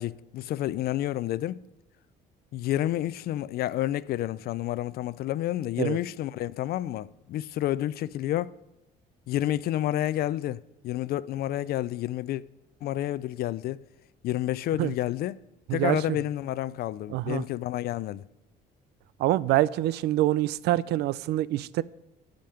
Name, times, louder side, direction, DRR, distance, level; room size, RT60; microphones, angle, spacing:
voice 1, 0.0-1.6 2.5-8.5 9.3-12.4 12.8-13.8 14.2-15.4 15.7-18.2, left 13 dB, 65° left, 0.5 m, -30 dB
voice 2, 15.7-16.2 17.1-17.4 19.2-21.8, right 15 dB, 75° right, 0.4 m, -25 dB
12.5 x 5.2 x 7.6 m
cardioid pair, 110°, 17 cm